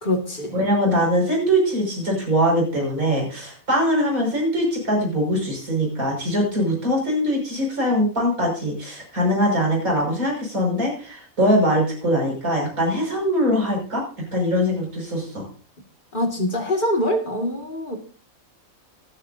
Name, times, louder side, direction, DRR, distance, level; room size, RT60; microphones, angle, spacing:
voice 1, 0.0-0.6 16.1-18.0, left 1 dB, 35° left, 2 dB, 2.3 m, -24 dB
voice 2, 0.5-14.0 14.3-15.5, equal, 75° right, -1 dB, 6.3 m, -22 dB
24.5 x 8.9 x 2.7 m, 0.40 s
omnidirectional pair, 1.5 m